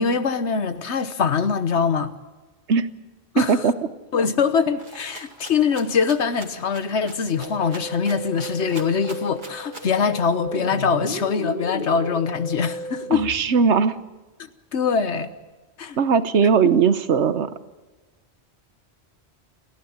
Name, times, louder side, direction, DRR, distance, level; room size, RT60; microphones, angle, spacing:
voice 1, 0.0-2.1 3.3-3.6 4.1-13.2 14.7-15.3 15.8-16.0, left 6 dB, 85° left, 1.4 m, -23 dB
voice 2, 3.4-3.7 13.1-14.0 16.0-17.5, right 6 dB, 85° right, 1.3 m, -19 dB
Rattle (instrument), 4.8-10.0, right 2 dB, 45° right, 2.3 m, -43 dB
Musical instrument, 7.4-13.4, left 1 dB, 55° left, 5.5 m, -33 dB
29.5 x 12.0 x 8.8 m
omnidirectional pair, 1.1 m